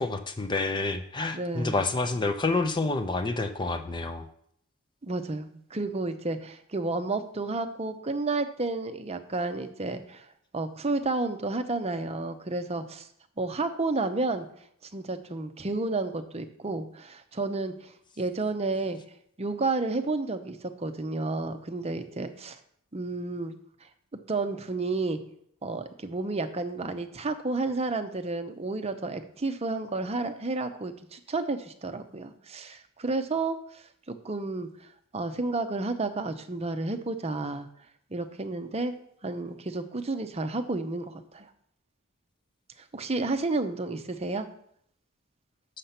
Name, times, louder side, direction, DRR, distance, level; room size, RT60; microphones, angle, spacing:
voice 1, 0.0-4.3, left 3 dB, 20° left, 8 dB, 0.5 m, -28 dB
voice 2, 1.3-1.8 5.0-10.3 10.5-13.1 13.4-14.5 14.9-17.9 18.2-19.0 19.4-22.6 22.9-23.5 24.3-25.2 25.6-34.7 35.1-37.7 38.1-39.0 39.2-41.5 42.9-44.5, right 3 dB, 30° right, 8 dB, 0.7 m, -31 dB
6.8 x 6.6 x 5.8 m, 0.69 s
head